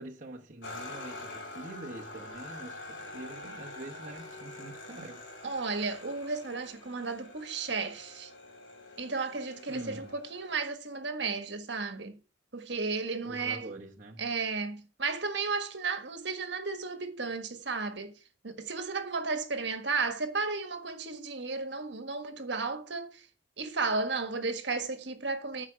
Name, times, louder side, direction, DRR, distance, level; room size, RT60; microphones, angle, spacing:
voice 1, 0.0-5.2 9.7-10.1 13.2-14.3, right 2 dB, 40° right, 1.1 m, -44 dB
sound 1, 0.6-10.6, left 2 dB, 75° left, 2.8 m, -46 dB
voice 2, 5.4-8.3 9.0-12.2 12.5-13.6 14.2-18.2 18.4-23.2 23.6-25.7, right 4 dB, 65° right, 1.4 m, -34 dB
13.5 x 4.9 x 5.8 m
head